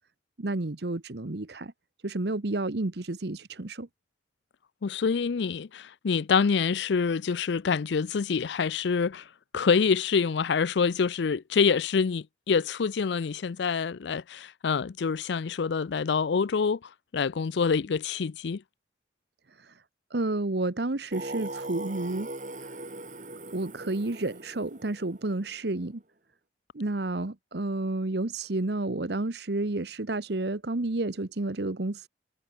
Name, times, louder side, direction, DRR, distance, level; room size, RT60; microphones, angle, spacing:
voice 1, 0.4-1.7 2.0-3.9 20.1-22.3 23.5-26.0 26.7-32.1, right 2 dB, 65° right, 1.1 m, -30 dB
voice 2, 4.8-9.2 9.5-16.8 17.1-18.6, left 5 dB, 75° left, 0.4 m, -26 dB
Singing, 21.1-25.8, right 2 dB, 45° right, 5.5 m, -40 dB
head